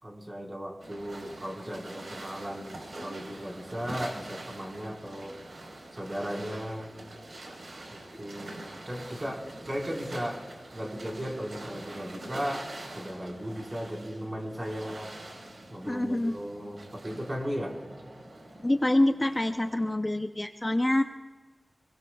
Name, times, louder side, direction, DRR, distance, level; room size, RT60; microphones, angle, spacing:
voice 1, 0.0-5.4 5.9-6.9 7.9-8.6 8.9-10.4 10.7-15.1 15.7-17.8, equal, 30° right, -2 dB, 4.4 m, -36 dB
sound 1, 0.8-19.9, right 1 dB, 90° right, 4.2 m, -45 dB
voice 2, 15.9-16.4 18.6-21.0, left 1 dB, 25° left, 6 dB, 0.6 m, -26 dB
29.0 x 20.5 x 2.3 m, 1.3 s
wide cardioid pair, 70°, 0 cm